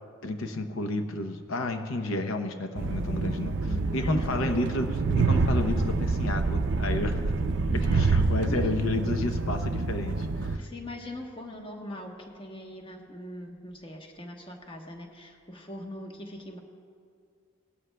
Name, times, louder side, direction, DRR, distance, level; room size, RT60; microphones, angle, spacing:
voice 1, 0.2-7.4 7.7-10.6, left 2 dB, 85° left, 6 dB, 0.7 m, -31 dB
Train, 2.8-10.6, right 3 dB, 60° right, 0.4 m, -27 dB
voice 2, 3.7-4.5 7.7-8.0 8.5-8.8 10.6-16.6, left 1 dB, 25° left, 1 dB, 1.0 m, -41 dB
18.5 x 12.5 x 2.2 m, 2.2 s
head